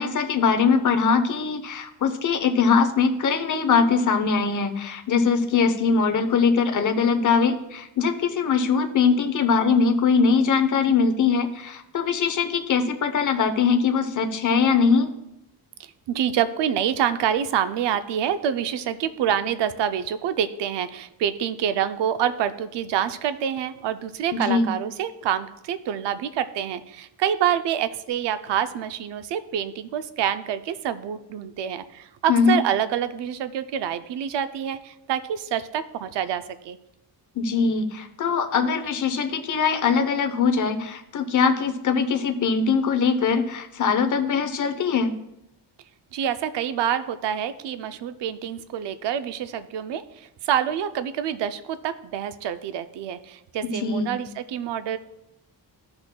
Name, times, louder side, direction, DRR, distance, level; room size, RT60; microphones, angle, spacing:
voice 1, 0.0-15.1 24.3-24.7 32.3-32.6 37.4-45.1 53.6-54.1, left 5 dB, 45° left, 7 dB, 0.8 m, -22 dB
voice 2, 15.8-36.8 46.1-55.0, right 9 dB, 80° right, 11 dB, 0.6 m, -27 dB
14.0 x 6.1 x 2.2 m, 0.86 s
wide cardioid pair, 135°, 42 cm